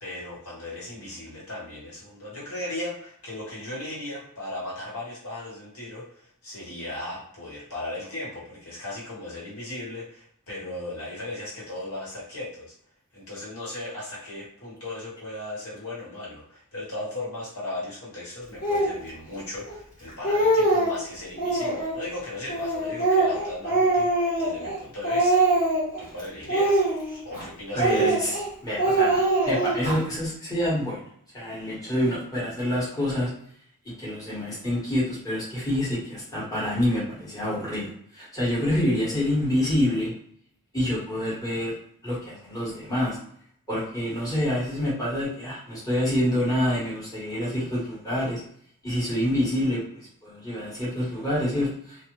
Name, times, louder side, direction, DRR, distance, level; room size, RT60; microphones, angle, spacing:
voice 1, 0.0-12.7 13.1-25.4 26.0-26.8 27.2-28.2, left 1 dB, 80° left, -7 dB, 1.5 m, -37 dB
Speech, 18.6-18.9 19.7-19.8 20.1-21.0 21.4-22.0 22.5-24.8 25.0-26.0 26.5-27.4 27.8-28.5 28.8-29.9, right 2 dB, 35° left, 1.3 m, -23 dB
voice 2, 27.7-28.3 28.6-31.0 31.3-33.3 34.0-40.1 40.7-41.7 42.0-43.2 43.7-48.4 48.8-52.1, left 1 dB, 15° left, -9 dB, 1.2 m, -27 dB
2.5 x 2.4 x 3.1 m, 0.63 s
head